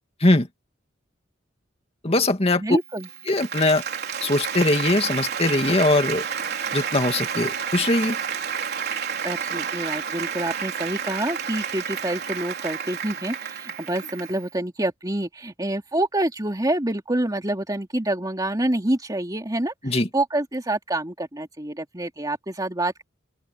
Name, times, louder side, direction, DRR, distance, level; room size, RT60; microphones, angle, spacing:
voice 1, 2.0-2.6 3.3-3.8 4.2-6.2 6.7-8.2 19.8-20.1, left 2 dB, 30° left, 2.3 m, -21 dB
voice 2, 2.6-3.1 9.2-23.0, right 1 dB, 20° right, 2.8 m, -27 dB
Applause, 2.9-14.4, right 7 dB, 55° right, 4.0 m, -30 dB
open air
head